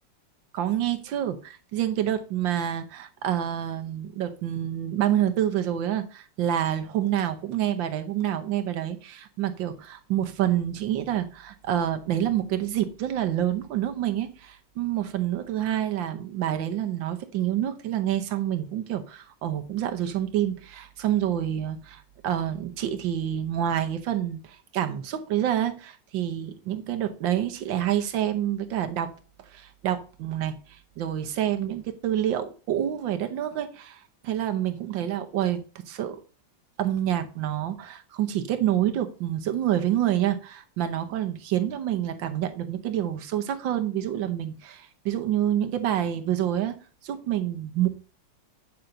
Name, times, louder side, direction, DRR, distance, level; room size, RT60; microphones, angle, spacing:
voice 1, 0.5-29.1 29.5-30.6 31.0-36.2 36.8-46.8 47.0-47.9, right 11 dB, 90° right, 1.6 m, -27 dB
9.3 x 5.8 x 3.9 m
omnidirectional pair, 2.0 m